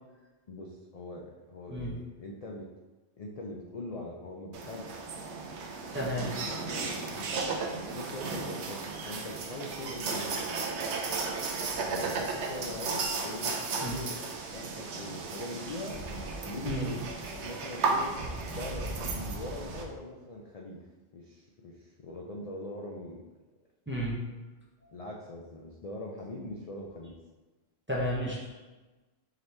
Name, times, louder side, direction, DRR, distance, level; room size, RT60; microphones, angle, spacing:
voice 1, 0.5-2.7 3.2-4.9 6.5-10.7 11.8-14.2 14.5-16.0 16.4-17.1 17.4-18.1 18.5-20.9 21.1-23.2 24.9-27.2, left 2 dB, 60° left, -1 dB, 0.4 m, -42 dB
sound 1, 4.5-19.8, right 4 dB, 85° right, 0.9 m, -34 dB
voice 2, 5.9-6.3 13.8-14.0 16.6-16.9 23.9-24.2 27.9-28.6, equal, 15° right, -5 dB, 0.6 m, -32 dB
4.9 x 2.9 x 3.2 m, 1.2 s
omnidirectional pair, 1.1 m